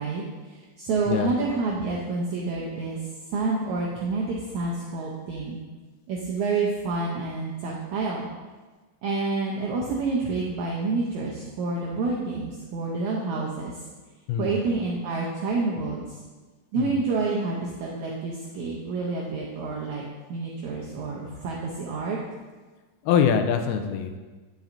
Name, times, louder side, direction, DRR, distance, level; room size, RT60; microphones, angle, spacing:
voice 1, 0.0-3.0 3.3-5.6 6.1-8.3 9.0-13.8 14.4-16.2 16.7-20.0 20.3-22.2, right 3 dB, 85° right, -3 dB, 1.7 m, -28 dB
voice 2, 14.3-14.6 16.8-17.0 23.0-24.2, left 7 dB, 85° left, 7 dB, 2.5 m, -24 dB
9.1 x 7.2 x 2.6 m, 1.3 s
omnidirectional pair, 4.3 m